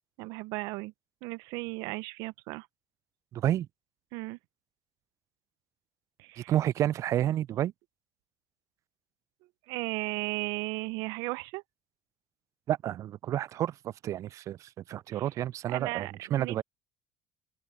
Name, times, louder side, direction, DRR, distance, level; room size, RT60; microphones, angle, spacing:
voice 1, 0.2-0.9 1.2-2.7 4.1-4.4 6.2-6.5 9.7-11.6 15.1-15.3 15.7-16.6, right 23 dB, 70° right, 1.0 m, -35 dB
voice 2, 3.3-3.7 6.4-7.7 12.7-16.6, right 12 dB, 50° right, 0.4 m, -30 dB
open air
hypercardioid pair, 65°, 7 cm